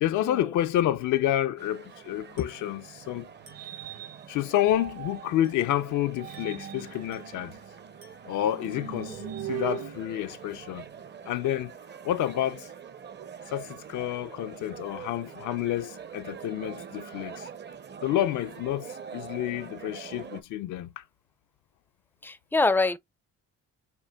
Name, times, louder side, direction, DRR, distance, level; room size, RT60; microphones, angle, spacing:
voice 1, 0.0-3.3 4.3-7.5 8.3-10.9 11.3-11.7 12.0-12.7 13.5-17.5 18.0-21.0, left 12 dB, 75° left, 0.5 m, -29 dB
sound 1, 1.6-20.4, right 7 dB, 35° right, 0.6 m, -45 dB
sound 2, 2.3-5.5 6.0-11.2, right 11 dB, 60° right, 1.0 m, -41 dB
Glass, 2.4-2.7 3.5-3.8 4.5-4.8 5.4-5.8 6.3-6.7 7.1-7.4 8.0-8.4, right 2 dB, 75° right, 3.6 m, -58 dB
voice 2, 22.2-23.0, left 3 dB, 5° left, 0.4 m, -26 dB
6.8 x 2.5 x 2.2 m
cardioid pair, 90°, 30 cm